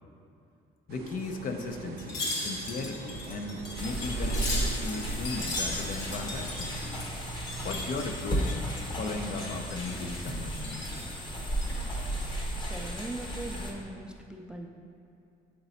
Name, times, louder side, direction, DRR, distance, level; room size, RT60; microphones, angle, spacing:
voice 1, 0.9-6.7 7.6-8.6 8.9-10.8, left 3 dB, 55° left, 5 dB, 0.6 m, -36 dB
sound 1, 0.9-6.8, right 4 dB, 70° right, 0.6 m, -45 dB
Wind chime, 2.0-9.1 9.3-10.2 10.5-11.1 11.5-12.4 12.8-13.0, left 2 dB, 90° left, 1.4 m, -38 dB
sound 2, 3.8-13.7, right 1 dB, 25° left, 1.0 m, -34 dB
voice 2, 12.5-14.7, right 2 dB, 5° right, 2 dB, 0.4 m, -40 dB
7.9 x 4.0 x 4.2 m, 2.6 s
cardioid pair, 110°, 17 cm